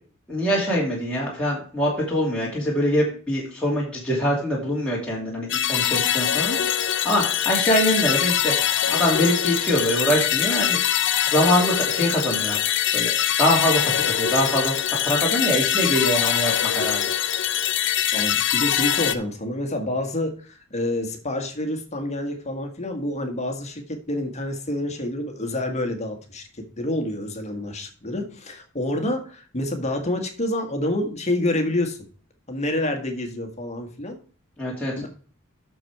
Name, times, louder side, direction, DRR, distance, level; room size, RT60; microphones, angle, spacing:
voice 1, 0.3-8.5 8.9-10.8 11.3-12.6 12.9-17.0 34.6-34.9, equal, 5° left, -6 dB, 2.7 m, -24 dB
sound 1, 5.5-19.1, left 10 dB, 60° left, 0.7 m, -23 dB
voice 2, 18.1-32.0 32.5-34.2 35.0-35.1, left 1 dB, 35° left, 5 dB, 1.6 m, -28 dB
8.6 x 6.7 x 4.7 m, 0.42 s
head